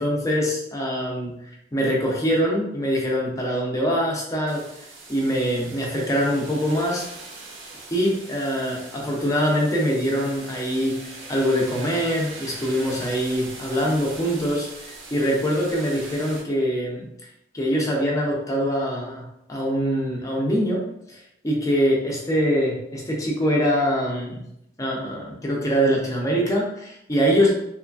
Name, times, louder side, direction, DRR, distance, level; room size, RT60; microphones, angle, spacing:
voice 1, 0.0-1.3 1.7-4.6 5.1-7.1 7.9-11.0 11.3-17.0 17.5-20.8 21.1-24.4 24.8-27.5, equal, 15° left, -3 dB, 0.5 m, -23 dB
sound 1, 4.5-16.4, right 3 dB, 85° right, 0.6 m, -41 dB
3.0 x 2.3 x 2.4 m, 0.79 s
head